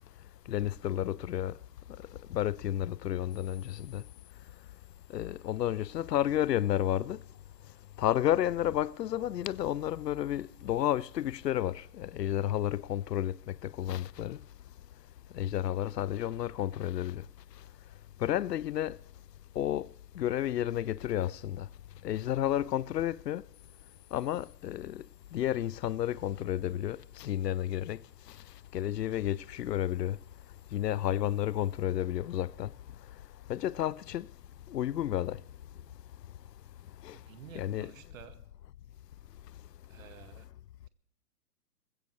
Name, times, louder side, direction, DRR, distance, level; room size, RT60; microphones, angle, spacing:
voice 1, 0.5-1.6 2.3-4.0 5.1-7.2 8.0-14.4 15.3-17.2 18.2-19.0 19.6-19.9 20.2-21.7 22.0-23.4 24.1-25.0 25.3-28.0 28.7-30.2 30.7-32.7 33.5-34.3 34.7-35.4 37.0-37.2 37.5-37.9, left 12 dB, 80° left, 0.6 m, -31 dB
voice 2, 37.1-38.4 39.9-40.5, right 9 dB, 55° right, 2.0 m, -51 dB
20.5 x 15.5 x 3.2 m
hypercardioid pair, 135°, 48 cm